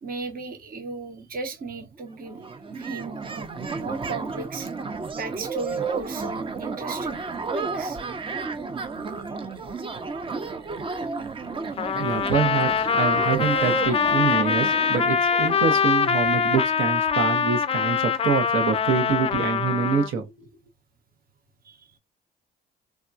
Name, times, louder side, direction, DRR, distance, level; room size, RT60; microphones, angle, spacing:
voice 1, 0.0-3.5 3.7-4.7 5.2-7.2 7.5-8.0 11.0-11.1 21.6-21.9, right 3 dB, 45° right, 0.8 m, -35 dB
sound 1, 1.9-2.0 2.2-16.8, right 4 dB, 25° right, 0.5 m, -33 dB
Trumpet, 11.8-20.1, left 6 dB, 30° left, 0.4 m, -23 dB
voice 2, 12.0-20.3, right 6 dB, 80° right, 0.8 m, -25 dB
3.5 x 2.2 x 2.5 m
cardioid pair, 90°, 20 cm